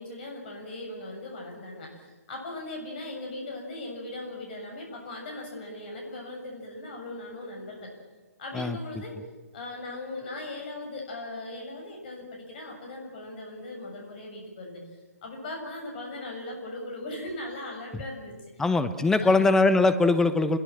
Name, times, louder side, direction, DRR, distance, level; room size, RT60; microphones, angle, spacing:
voice 1, 0.0-7.9 8.4-9.2 9.5-14.8 15.2-18.6 19.2-19.5, left 2 dB, 35° left, 1 dB, 7.4 m, -39 dB
voice 2, 18.6-20.6, left 3 dB, 5° left, 11 dB, 1.1 m, -21 dB
30.0 x 22.0 x 7.7 m, 1.3 s
figure-of-eight pair, 130°, 8 cm